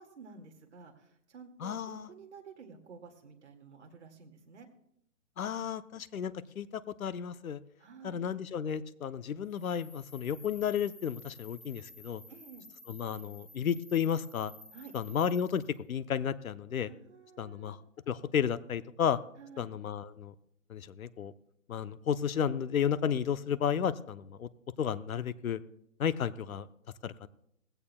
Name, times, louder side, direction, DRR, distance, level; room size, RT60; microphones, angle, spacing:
voice 1, 0.0-4.7 7.8-8.2 12.3-12.7 14.7-14.9 16.9-17.8 19.4-19.7, right 5 dB, 50° right, 3 dB, 2.1 m, -52 dB
voice 2, 1.6-2.0 5.4-7.6 8.0-12.2 12.9-14.5 14.9-15.6 15.9-16.9 17.4-17.8 18.1-19.2 19.6-20.3 20.7-21.3 21.7-24.5 24.8-25.6 26.0-26.7 27.0-27.3, left 8 dB, 70° left, 14 dB, 0.8 m, -32 dB
sound 1, 9.5-15.8, left 2 dB, 20° left, 0.8 m, -54 dB
19.5 x 16.0 x 2.3 m, 0.75 s
hypercardioid pair, 175°, 43 cm